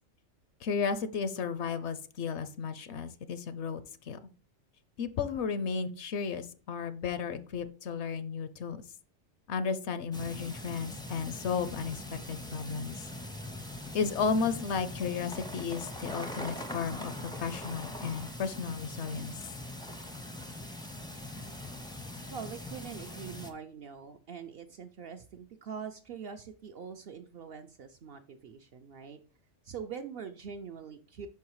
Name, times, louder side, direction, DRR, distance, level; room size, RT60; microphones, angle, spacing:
voice 1, 0.6-4.2 5.0-8.8 9.5-13.1 13.9-19.3, left 5 dB, 65° left, 12 dB, 0.8 m, -34 dB
sound 1, 10.1-23.5, left 1 dB, 5° left, 0.4 m, -42 dB
voice 2, 22.3-29.2 29.6-31.3, right 6 dB, 65° right, 7 dB, 0.6 m, -43 dB
5.5 x 4.6 x 4.7 m, 0.39 s
omnidirectional pair, 1.3 m